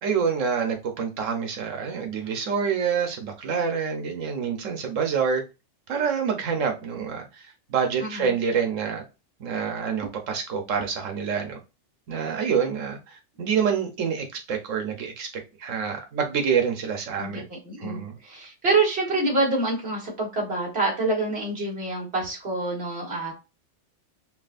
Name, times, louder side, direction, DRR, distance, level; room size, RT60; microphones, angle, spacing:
voice 1, 0.0-5.4 5.9-9.0 9.4-11.6 12.1-15.3 15.6-17.5 17.8-18.2, right 6 dB, 90° right, 4 dB, 1.2 m, -27 dB
voice 2, 8.0-8.3 17.2-23.3, right 2 dB, 55° right, -2 dB, 2.0 m, -26 dB
5.8 x 2.4 x 2.5 m, 0.27 s
omnidirectional pair, 1.3 m